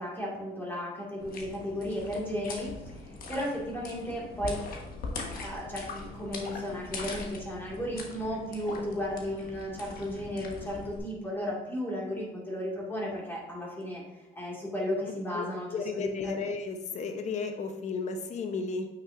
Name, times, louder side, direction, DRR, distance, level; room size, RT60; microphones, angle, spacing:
voice 1, 0.0-2.7 3.3-4.6 5.3-16.3, equal, 10° left, -4 dB, 2.1 m, -34 dB
sound 1, 1.2-11.0, left 3 dB, 60° left, 1.4 m, -41 dB
voice 2, 15.3-18.9, left 4 dB, 45° left, 6 dB, 0.8 m, -34 dB
8.7 x 6.0 x 2.6 m, 1.1 s
cardioid pair, 110°, 17 cm